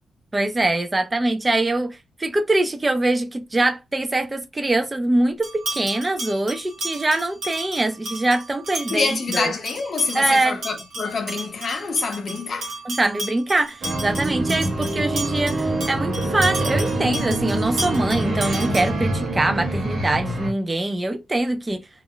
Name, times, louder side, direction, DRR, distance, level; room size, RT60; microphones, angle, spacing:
voice 1, 0.3-9.5 10.1-10.6 12.9-21.9, right 2 dB, 15° right, 0.3 m, -23 dB
sound 1, 5.4-19.1, right 2 dB, 75° right, 1.1 m, -34 dB
voice 2, 8.9-12.8, left 4 dB, 40° left, 0.6 m, -26 dB
sound 2, 13.8-20.5, right 1 dB, 40° right, 1.0 m, -25 dB
2.3 x 2.0 x 3.6 m
wide cardioid pair, 180°, 0 cm